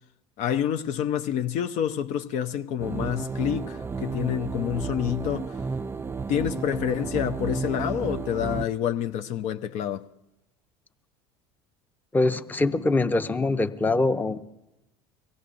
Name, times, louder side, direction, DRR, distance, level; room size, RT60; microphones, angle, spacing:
voice 1, 0.4-5.6 6.3-10.1, left 10 dB, 55° left, 0.6 m, -28 dB
Digi Death, 2.8-8.6, right 4 dB, 15° right, 0.4 m, -32 dB
voice 2, 12.1-14.4, left 2 dB, 10° left, 0.7 m, -23 dB
23.5 x 16.5 x 2.5 m
hypercardioid pair, 80°, 14 cm